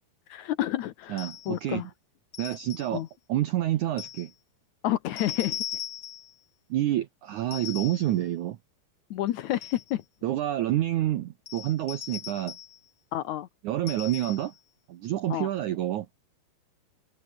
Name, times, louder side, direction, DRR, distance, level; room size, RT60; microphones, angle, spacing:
voice 1, 0.3-1.9 2.9-3.1 4.8-5.6 9.1-10.0 13.1-13.5 15.3-15.5, left 13 dB, 90° left, 1.6 m, -29 dB
voice 2, 1.1-1.9 2.4-3.0 3.3-4.3 6.7-8.6 10.2-12.6 13.6-14.5 14.9-16.1, right 13 dB, 80° right, 1.7 m, -28 dB
sound 1, 1.2-1.6 2.3-3.0 4.0-4.3 5.2-6.3 7.5-8.2 9.3-9.9 11.5-12.8 13.9-14.6, left 11 dB, 60° left, 1.7 m, -39 dB
omnidirectional pair, 4.8 m